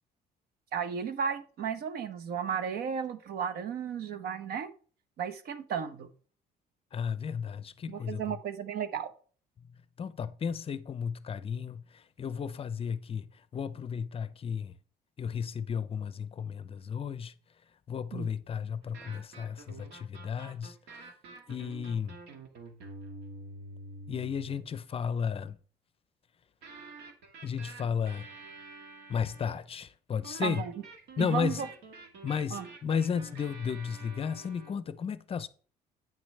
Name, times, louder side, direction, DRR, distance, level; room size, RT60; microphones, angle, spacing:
voice 1, 0.7-4.7 5.2-6.1 7.9-9.1 18.1-18.3 30.4-30.7 31.2-31.7 32.5-32.7, right 7 dB, 65° right, 0.9 m, -34 dB
voice 2, 6.9-8.4 10.0-13.2 13.5-14.7 15.2-17.3 17.9-20.8 21.5-22.2 24.1-25.6 27.4-28.3 29.1-30.6 31.2-31.6 32.2-35.5, left 7 dB, 35° left, 0.5 m, -33 dB
sound 1, 18.8-24.7 26.6-29.6 30.2-34.7, right 2 dB, 85° right, 1.6 m, -48 dB
8.8 x 6.2 x 3.2 m
cardioid pair, 110°, 17 cm